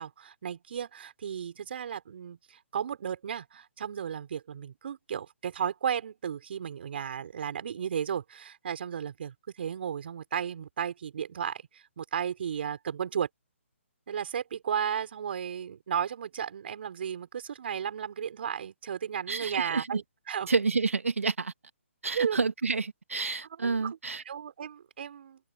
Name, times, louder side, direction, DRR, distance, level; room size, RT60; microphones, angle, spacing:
voice 1, 0.0-13.3 14.1-20.5 22.1-22.4 23.6-23.9 24.3-25.4, right 8 dB, 50° right, 5.2 m, -34 dB
voice 2, 19.3-20.0 20.5-21.5 22.0-24.2, right 4 dB, 80° right, 1.8 m, -29 dB
open air
figure-of-eight pair, 145°, 7 cm